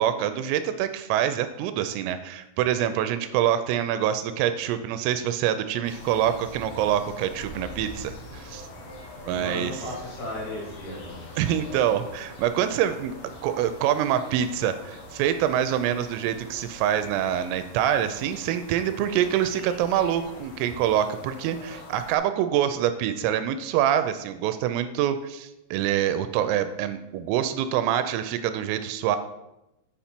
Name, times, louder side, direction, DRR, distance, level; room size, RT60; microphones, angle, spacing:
voice 1, 0.0-8.7 9.3-9.8 11.4-29.2, right 10 dB, 85° right, 10 dB, 3.1 m, -25 dB
sound 1, 5.8-22.2, left 1 dB, 70° left, 2.0 m, -43 dB
voice 2, 9.3-11.5, left 1 dB, 55° left, -5 dB, 4.1 m, -36 dB
8.3 x 5.3 x 4.4 m, 0.91 s
omnidirectional pair, 5.8 m